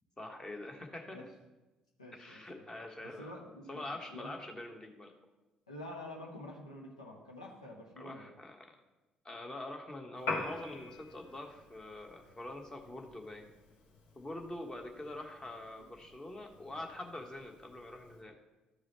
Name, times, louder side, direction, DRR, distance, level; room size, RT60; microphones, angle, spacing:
voice 1, 0.2-1.3 2.1-3.3 3.7-5.1 8.0-8.7 9.2-13.5 14.1-18.4, left 1 dB, 20° left, 2 dB, 1.4 m, -45 dB
voice 2, 2.0-2.6 3.0-4.3 5.7-8.3, left 1 dB, 85° left, -1 dB, 1.2 m, -48 dB
Piano, 10.2-18.2, left 3 dB, 60° left, 1.3 m, -46 dB
13.0 x 4.9 x 4.2 m, 1.1 s
figure-of-eight pair, 45°, 3 cm